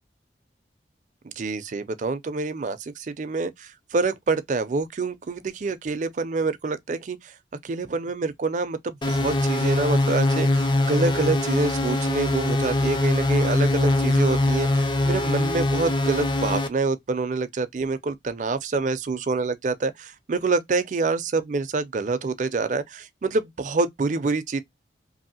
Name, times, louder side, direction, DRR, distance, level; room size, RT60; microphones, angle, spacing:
voice 1, 1.2-7.3 7.6-24.6, right 3 dB, 45° right, 0.4 m, -26 dB
sound 1, 9.0-16.7, left 2 dB, 25° left, 0.4 m, -22 dB
2.8 x 2.7 x 2.7 m
head